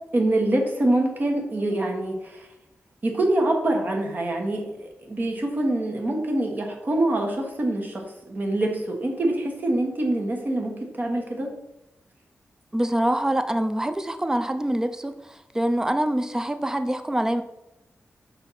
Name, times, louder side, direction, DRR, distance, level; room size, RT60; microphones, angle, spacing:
voice 1, 0.1-2.5 3.0-11.5, right 1 dB, 40° right, 1 dB, 1.2 m, -25 dB
voice 2, 12.7-17.4, right 1 dB, 10° right, 9 dB, 0.4 m, -25 dB
5.8 x 4.3 x 4.1 m, 0.89 s
wide cardioid pair, 150°, 5 cm